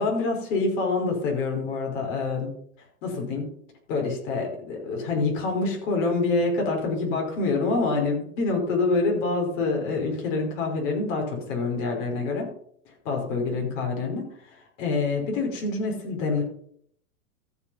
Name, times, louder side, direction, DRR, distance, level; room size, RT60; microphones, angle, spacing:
voice 1, 0.0-2.5 3.0-3.5 3.9-12.5 13.1-14.3 14.8-16.4, left 3 dB, 60° left, 0 dB, 5.3 m, -26 dB
14.0 x 5.6 x 5.7 m, 0.65 s
hypercardioid pair, 125°, 43 cm